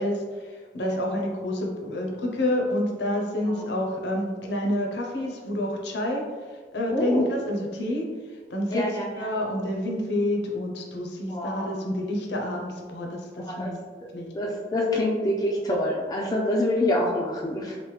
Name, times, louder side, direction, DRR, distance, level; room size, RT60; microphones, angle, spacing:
voice 1, 0.0-6.2 6.7-8.1 8.5-8.8 9.2-13.8 14.1-14.3, left 1 dB, 75° left, 0 dB, 0.5 m, -28 dB
voice 2, 6.9-7.3 8.7-9.3 11.3-11.8 13.4-13.7 14.3-17.8, left 1 dB, 20° left, -2 dB, 0.3 m, -26 dB
3.2 x 2.1 x 3.1 m, 1.5 s
head